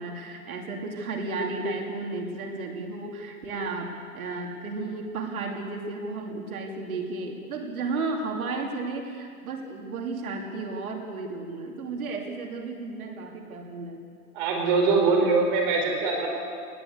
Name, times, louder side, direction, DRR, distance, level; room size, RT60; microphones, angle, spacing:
voice 1, 0.0-14.0, right 3 dB, 70° right, 2 dB, 2.7 m, -33 dB
voice 2, 14.3-16.3, right 4 dB, 35° right, 1 dB, 4.5 m, -22 dB
19.5 x 16.5 x 8.2 m, 2.2 s
hypercardioid pair, 170°, 44 cm